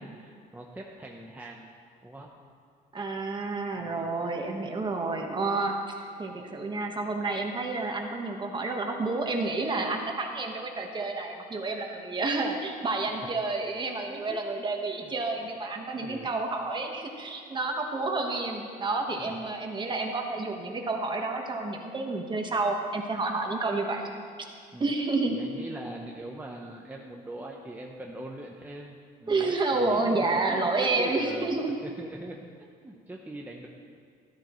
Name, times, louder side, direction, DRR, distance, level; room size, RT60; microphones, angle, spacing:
voice 1, 0.0-1.7 2.0-2.3 3.8-3.9 13.1-13.2 14.1-14.4 15.4-15.5 15.9-16.3 19.2-19.4 24.7-24.9 25.3-32.4 32.8-33.7, right 1 dB, 10° right, -1 dB, 0.9 m, -42 dB
voice 2, 2.9-24.1 24.4-24.5 24.8-25.4 29.3-31.8, right 3 dB, 25° right, 2 dB, 1.4 m, -30 dB
13.0 x 12.5 x 3.2 m, 2.2 s
cardioid pair, 110°, 17 cm